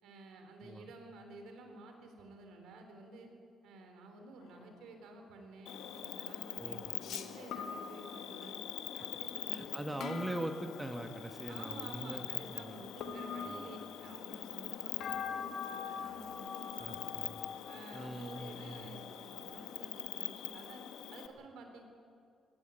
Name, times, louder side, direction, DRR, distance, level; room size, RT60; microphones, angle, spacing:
voice 1, 0.0-3.3 3.6-8.6 9.0-9.9 11.5-17.0 17.7-20.8 21.1-21.8, right 2 dB, 85° right, 5 dB, 3.7 m, -52 dB
voice 2, 0.6-0.9 6.6-6.9 8.9-9.1 9.5-12.8 13.4-13.7 16.8-17.4 17.9-18.9, right 1 dB, 10° right, 6 dB, 1.3 m, -42 dB
sound 1, 4.4-4.7 7.0-8.5 10.0-11.3 13.0-14.2 15.0-19.6, left 6 dB, 75° left, 1.6 m, -44 dB
Cricket, 5.7-21.3, left 10 dB, 90° left, 1.3 m, -44 dB
19.0 x 16.0 x 9.8 m, 2.5 s
cardioid pair, 90°, 0 cm